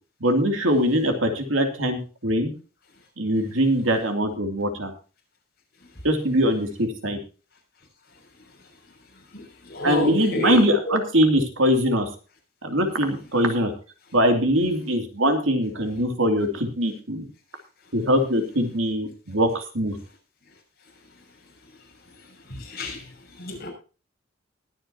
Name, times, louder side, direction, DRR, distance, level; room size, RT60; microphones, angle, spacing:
voice 1, 0.2-2.5 3.2-4.9 6.0-7.2 9.8-12.1 12.6-13.7 14.1-17.2 17.9-20.0, equal, 75° right, 4 dB, 2.7 m, -22 dB
voice 2, 9.3-10.6 10.9-11.0 22.6-23.0 23.4-23.7, left 1 dB, 50° left, 0 dB, 6.5 m, -29 dB
21.0 x 9.0 x 2.9 m, 0.34 s
head